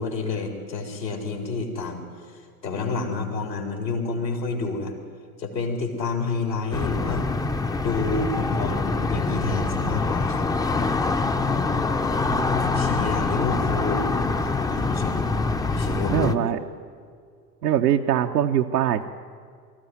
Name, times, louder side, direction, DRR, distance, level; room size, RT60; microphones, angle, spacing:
voice 1, 0.0-4.9 5.4-7.3 7.8-10.5 11.3-11.7 12.5-14.1 14.4-15.3 15.7-16.3, left 3 dB, 80° left, 1 dB, 4.1 m, -29 dB
sound 1, 6.7-16.3, left 3 dB, 5° left, 0.7 m, -25 dB
voice 2, 16.1-16.6 17.6-19.1, right 10 dB, 70° right, 3 dB, 1.0 m, -23 dB
23.5 x 14.5 x 9.4 m, 2.2 s
figure-of-eight pair, 85°, 50 cm